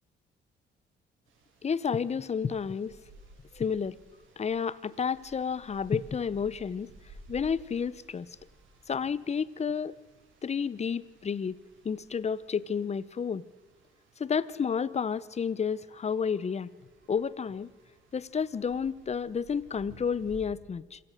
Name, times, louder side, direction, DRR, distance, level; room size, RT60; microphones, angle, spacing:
sound 1, 1.3-20.4, right 2 dB, 80° right, 6.0 m, -56 dB
voice 1, 1.6-3.0 3.5-3.9 4.4-6.9 7.3-8.4 8.9-9.9 10.4-11.6 11.8-13.4 14.2-16.7 17.1-17.7 18.1-21.0, left 6 dB, 35° left, 20 dB, 0.8 m, -31 dB
26.5 x 17.0 x 6.5 m, 1.3 s
cardioid pair, 90°, 20 cm